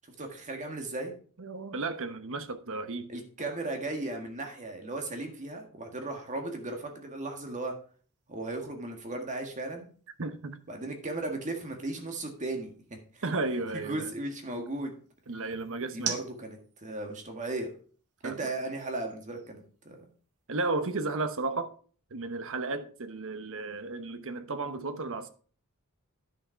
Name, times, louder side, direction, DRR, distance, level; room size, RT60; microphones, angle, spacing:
voice 1, 0.1-1.1 3.1-7.7 8.3-9.9 10.7-13.2 13.7-14.9 15.8-17.7 18.2-20.0, right 2 dB, 35° right, 1.8 m, -36 dB
voice 2, 1.4-3.1 10.2-10.6 13.2-14.1 15.3-16.1 18.2-18.4 20.5-21.7 22.1-25.3, right 3 dB, 65° right, 1.0 m, -33 dB
sound 1, 6.3-20.5, right 7 dB, 85° right, 1.5 m, -47 dB
10.5 x 6.4 x 4.5 m
head